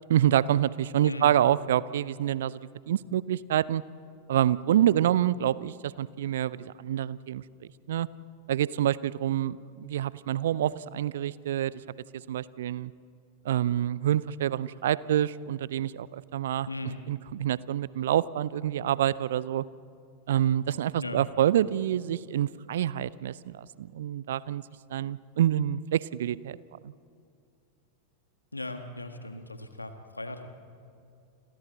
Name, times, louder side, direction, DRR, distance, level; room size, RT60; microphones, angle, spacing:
voice 1, 0.1-2.6 2.9-3.8 4.3-7.4 7.9-8.1 8.5-11.7 12.3-12.9 13.4-16.7 17.1-19.6 20.3-24.6 24.9-26.6 26.8-26.9, right 11 dB, 60° right, 20 dB, 0.5 m, -27 dB
voice 2, 1.0-1.4 16.7-17.0 21.0-21.3 28.5-30.5, left 2 dB, 80° left, 7 dB, 1.7 m, -38 dB
29.5 x 26.5 x 4.1 m, 2.4 s
figure-of-eight pair, 90°, 0 cm